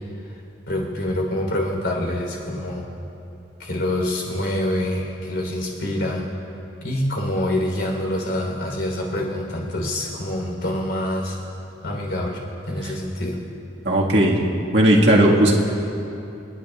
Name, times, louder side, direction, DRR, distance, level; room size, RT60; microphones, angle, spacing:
voice 1, 0.7-2.9 3.6-6.2 6.8-11.4 11.8-12.4 12.7-13.4, left 1 dB, 75° left, -1 dB, 3.7 m, -26 dB
voice 2, 13.9-14.4 14.7-15.5, right 1 dB, 70° right, -3 dB, 1.8 m, -16 dB
29.0 x 11.0 x 2.4 m, 2.8 s
head